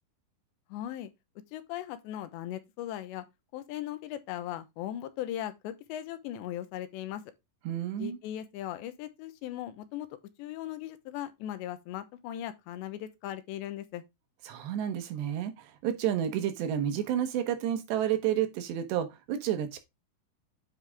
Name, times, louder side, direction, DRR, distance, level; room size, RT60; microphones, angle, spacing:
voice 1, 0.7-1.1 1.5-3.2 3.5-7.2 8.0-10.1 10.4-14.0, left 12 dB, 85° left, 3.2 m, -38 dB
voice 2, 7.7-8.2 14.5-19.8, right 10 dB, 80° right, 3.4 m, -30 dB
9.6 x 5.0 x 3.5 m
omnidirectional pair, 5.0 m